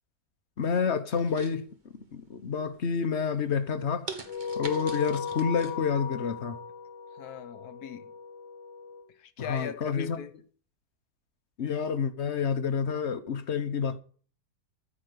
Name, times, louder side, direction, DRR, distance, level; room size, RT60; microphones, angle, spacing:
voice 1, 0.6-1.7 2.1-4.1 4.6-6.6 9.5-10.2 11.6-14.0, left 6 dB, 45° left, 1.2 m, -29 dB
sound 1, 1.1-2.1 2.6-3.0 3.4-3.5 4.1-5.7 6.1-6.2, right 4 dB, 30° right, 1.4 m, -42 dB
sound 2, 4.3-9.1, left 6 dB, 90° left, 1.9 m, -37 dB
voice 2, 7.1-8.1 9.1-10.3, left 7 dB, 65° left, 1.5 m, -40 dB
14.0 x 5.1 x 6.8 m
omnidirectional pair, 1.8 m